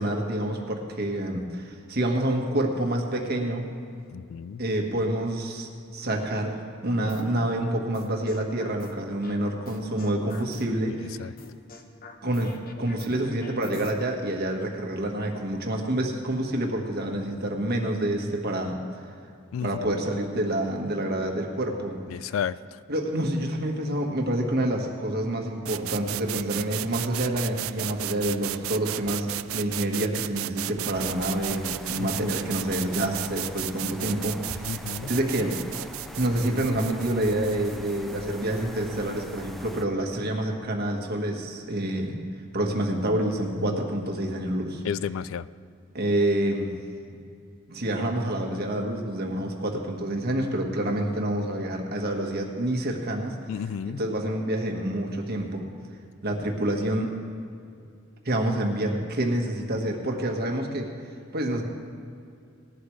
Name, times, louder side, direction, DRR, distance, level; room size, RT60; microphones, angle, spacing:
voice 1, 0.0-3.6 4.6-11.2 12.2-12.5 12.8-18.8 19.6-22.3 22.9-29.3 29.5-35.6 36.2-42.1 42.5-44.8 45.9-46.7 47.7-55.7 56.2-57.1 58.2-60.9 61.3-61.6, right 1 dB, 50° right, 2 dB, 1.5 m, -28 dB
voice 2, 4.1-4.6 11.2-11.3 19.5-19.7 22.1-22.5 32.0-32.3 34.7-35.1 43.7-43.8 44.8-45.4 53.5-54.0, left 7 dB, 70° left, 17 dB, 0.3 m, -31 dB
sound 1, 7.1-7.4 7.9-9.4 9.6-10.9 11.4-13.9, left 3 dB, 45° left, 1.0 m, -44 dB
sound 2, 25.6-39.4, right 14 dB, 85° right, 0.3 m, -35 dB
sound 3, 30.9-39.9, equal, ahead, 0.4 m, -42 dB
18.5 x 11.5 x 3.2 m, 2.4 s
head